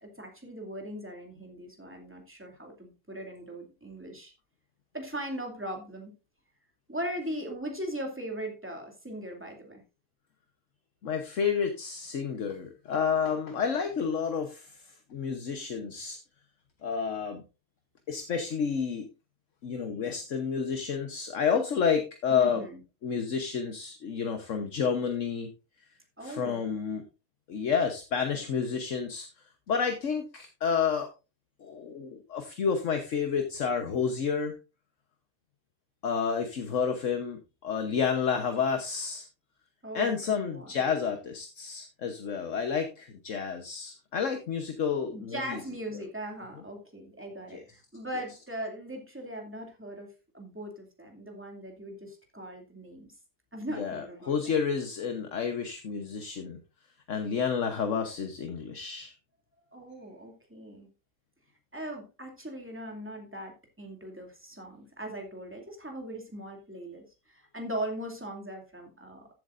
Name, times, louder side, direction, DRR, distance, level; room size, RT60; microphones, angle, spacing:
voice 1, 0.0-4.3 4.9-6.1 6.9-9.8 22.3-22.8 26.2-26.6 39.8-40.7 45.1-53.1 53.5-54.5 59.7-60.9 61.7-69.3, right 1 dB, 10° right, 1 dB, 2.5 m, -39 dB
voice 2, 11.0-16.2 16.8-17.4 18.1-19.1 19.6-22.6 23.0-25.5 26.2-27.0 27.5-29.3 29.7-31.1 31.6-34.5 36.0-39.3 39.9-45.6 47.5-47.6 53.7-56.6 57.1-59.1, left 6 dB, 65° left, 6 dB, 1.4 m, -30 dB
14.0 x 8.5 x 2.5 m, 0.29 s
omnidirectional pair, 1.4 m